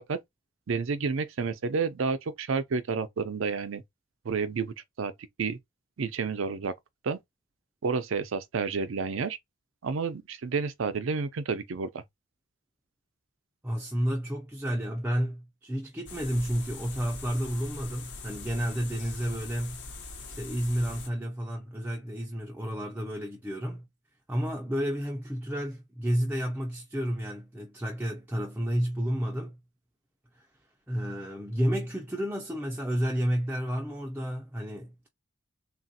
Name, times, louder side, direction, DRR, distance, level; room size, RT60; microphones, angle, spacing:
voice 1, 0.7-3.8 4.2-5.1 5.4-5.6 6.0-6.7 7.0-7.2 7.8-9.4 9.8-12.0, right 5 dB, 70° right, 0.5 m, -30 dB
voice 2, 13.6-19.9 20.3-23.9 24.3-29.6 30.3-30.5 30.9-35.1, equal, 10° right, 0.4 m, -31 dB
sound 1, 16.1-21.1, left 3 dB, 55° left, 0.9 m, -42 dB
3.2 x 2.3 x 2.6 m
head